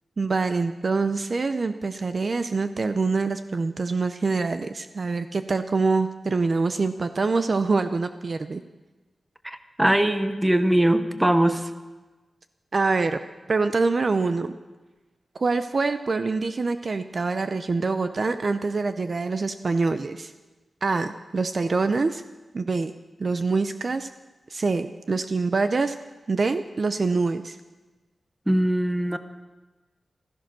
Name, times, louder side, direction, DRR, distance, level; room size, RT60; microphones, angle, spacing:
voice 1, 0.2-8.6 12.7-13.2 13.5-14.6 15.3-20.3 20.8-22.2 22.5-22.9 23.2-24.1 24.5-26.0 26.3-27.6, right 3 dB, 45° right, 10 dB, 0.6 m, -25 dB
voice 2, 9.4-11.6 28.5-29.2, right 1 dB, 10° right, 10 dB, 0.9 m, -21 dB
15.5 x 14.0 x 6.1 m, 1.2 s
wide cardioid pair, 150°, 0 cm